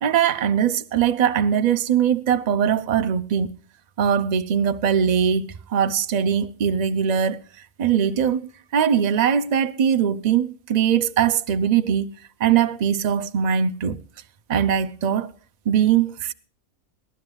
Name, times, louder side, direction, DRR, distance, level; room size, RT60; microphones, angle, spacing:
voice 1, 0.0-3.5 4.0-7.4 7.8-12.1 12.4-14.0 14.5-15.3 15.7-16.3, right 8 dB, 50° right, 0.5 m, -21 dB
22.0 x 14.5 x 2.3 m
omnidirectional pair, 1.6 m